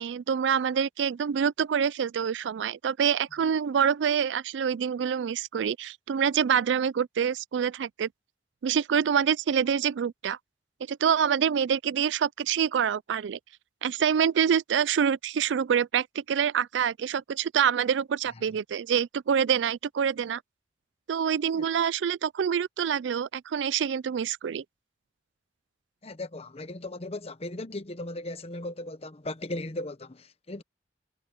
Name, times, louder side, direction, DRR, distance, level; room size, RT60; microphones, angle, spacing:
voice 1, 0.0-8.1 8.6-10.4 10.9-13.4 13.8-20.4 21.1-24.6, right 7 dB, 80° right, 0.4 m, -26 dB
voice 2, 26.0-30.6, left 2 dB, 35° left, 1.0 m, -37 dB
head